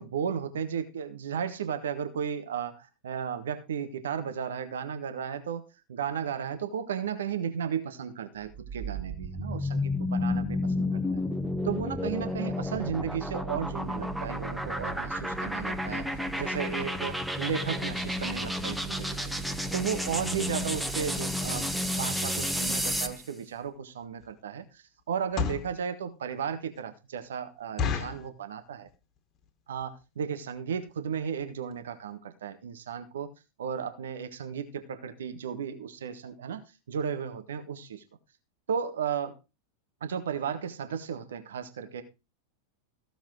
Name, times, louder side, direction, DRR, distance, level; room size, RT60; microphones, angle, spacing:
voice 1, 0.0-9.8 10.1-11.2 11.6-16.1 16.3-19.3 19.7-21.7 22.0-28.9 29.7-33.3 33.6-38.0 38.7-39.4 40.0-42.0, right 7 dB, 65° right, 1.5 m, -34 dB
sound 1, 8.4-23.2, left 1 dB, 5° right, 1.3 m, -31 dB
sound 2, 23.6-23.7 24.2-24.4 25.1-25.8 26.3-26.4 26.7-26.8 27.2-27.3 27.8-28.3 28.9-29.2 29.4-29.5 29.8-30.0 30.6-30.7 30.9-31.1 31.4-31.5 31.7-31.8, left 6 dB, 30° left, 2.0 m, -31 dB
15.5 x 7.0 x 4.8 m
figure-of-eight pair, 90°, 0 cm